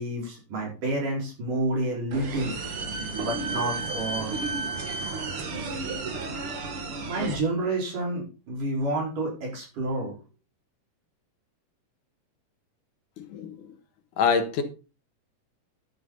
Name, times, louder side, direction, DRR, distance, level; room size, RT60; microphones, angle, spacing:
voice 1, 0.0-2.6 3.2-4.3 7.0-10.1, right 1 dB, 70° right, -2 dB, 6.5 m, -29 dB
sound 1, 2.1-7.4, right 3 dB, 45° right, 2.3 m, -32 dB
voice 2, 13.2-13.7 14.2-14.6, left 6 dB, 70° left, 7 dB, 2.8 m, -26 dB
11.5 x 9.2 x 4.1 m, 0.32 s
omnidirectional pair, 3.8 m